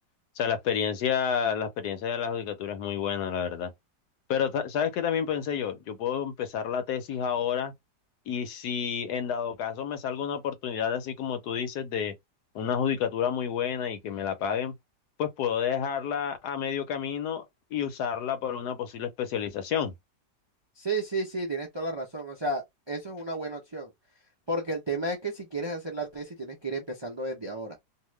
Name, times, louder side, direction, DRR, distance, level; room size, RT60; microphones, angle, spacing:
voice 1, 0.4-3.7 4.3-7.7 8.3-12.1 12.5-14.7 15.2-17.5 17.7-19.9, left 8 dB, 75° left, 1.2 m, -30 dB
voice 2, 20.8-23.9 24.5-27.8, right 2 dB, 40° right, 0.4 m, -32 dB
2.8 x 2.4 x 3.2 m
omnidirectional pair, 1.8 m